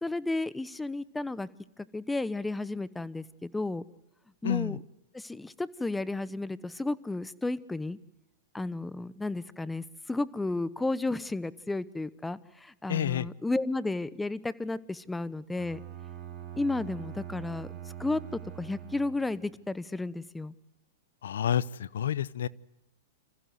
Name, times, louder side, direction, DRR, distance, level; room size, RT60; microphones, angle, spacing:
voice 1, 0.0-1.5 1.8-3.8 4.4-4.8 5.1-8.0 8.5-15.8 16.6-20.5, left 2 dB, 5° left, 18 dB, 0.9 m, -33 dB
voice 2, 4.4-4.8 12.9-13.3 21.2-22.5, left 9 dB, 80° left, 22 dB, 0.8 m, -29 dB
Bowed string instrument, 15.6-19.5, right 10 dB, 35° right, 6.7 m, -43 dB
27.0 x 15.0 x 7.8 m, 0.92 s
hypercardioid pair, 120°, 0 cm